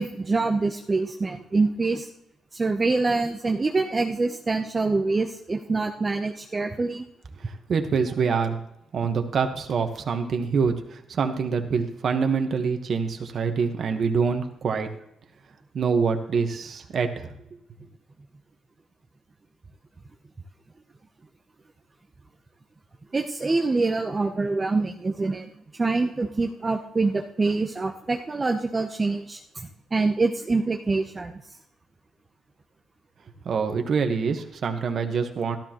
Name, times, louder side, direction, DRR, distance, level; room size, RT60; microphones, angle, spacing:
voice 1, 0.0-2.1 2.5-7.0 23.1-31.4, right 3 dB, 25° right, 3 dB, 0.7 m, -25 dB
voice 2, 7.4-8.6 8.9-14.9 15.7-17.3 33.4-35.6, right 5 dB, 55° right, 5 dB, 1.2 m, -25 dB
13.0 x 12.5 x 3.0 m, 0.79 s
cardioid pair, 90°, 0 cm